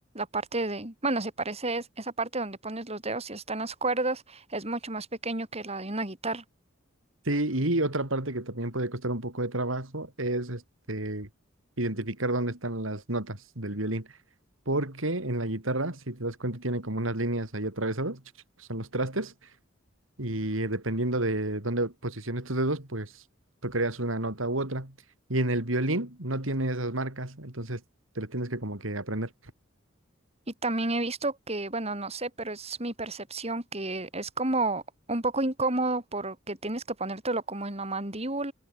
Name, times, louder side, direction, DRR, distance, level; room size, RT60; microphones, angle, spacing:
voice 1, 0.1-6.4 30.6-34.8 35.1-38.5, right 2 dB, 30° right, 5.6 m, -31 dB
voice 2, 7.3-10.6 10.9-11.3 11.8-14.1 14.7-18.2 18.6-19.3 20.2-23.2 23.6-24.9 25.3-27.8 28.2-29.3, right 1 dB, 80° right, 4.2 m, -30 dB
head